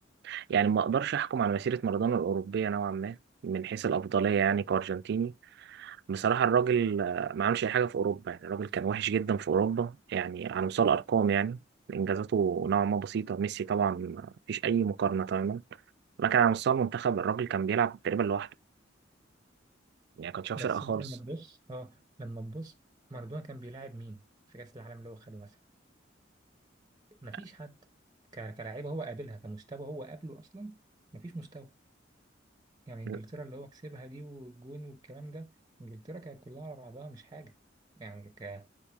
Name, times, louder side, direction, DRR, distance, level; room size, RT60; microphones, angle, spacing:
voice 1, 0.2-3.2 3.4-5.3 5.6-11.6 11.9-15.6 16.2-18.5 20.2-21.0 33.1-33.2, right 7 dB, 60° right, 0.3 m, -29 dB
voice 2, 20.6-22.7 23.1-24.2 24.5-25.6 27.2-27.8 28.3-30.8 31.1-31.7 32.9-35.5 35.8-37.5 38.0-38.7, right 2 dB, 20° right, 0.7 m, -43 dB
7.1 x 5.1 x 3.4 m
head